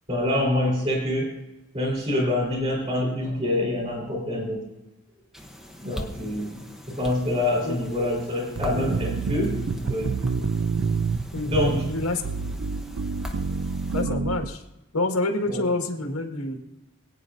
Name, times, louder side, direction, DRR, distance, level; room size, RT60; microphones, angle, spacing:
voice 1, 0.1-1.4 1.7-4.7 5.8-6.6 6.9-10.2 11.5-11.9 15.5-15.6, left 1 dB, 30° right, -1 dB, 4.0 m, -26 dB
sound 1, 5.3-14.0, equal, ahead, 0.8 m, -41 dB
sound 2, 8.6-14.5, right 5 dB, 60° right, 0.5 m, -28 dB
voice 2, 11.9-12.2 13.9-14.6 14.9-16.6, left 2 dB, 85° left, 4 dB, 1.6 m, -27 dB
26.0 x 9.0 x 2.6 m, 0.99 s
head